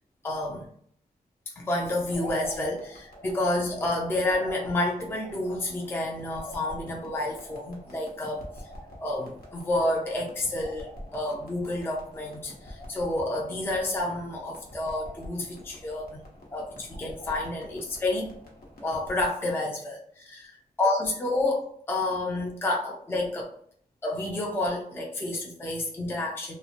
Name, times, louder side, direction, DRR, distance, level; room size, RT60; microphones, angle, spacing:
voice 1, 0.2-0.7 1.6-8.5 9.0-16.2 16.5-18.3 18.8-23.5 24.0-26.5, left 2 dB, 15° left, -1 dB, 0.4 m, -29 dB
sound 1, 2.1-19.3, left 1 dB, 75° left, 0.7 m, -45 dB
2.2 x 2.0 x 2.7 m, 0.63 s
wide cardioid pair, 100°, 15 cm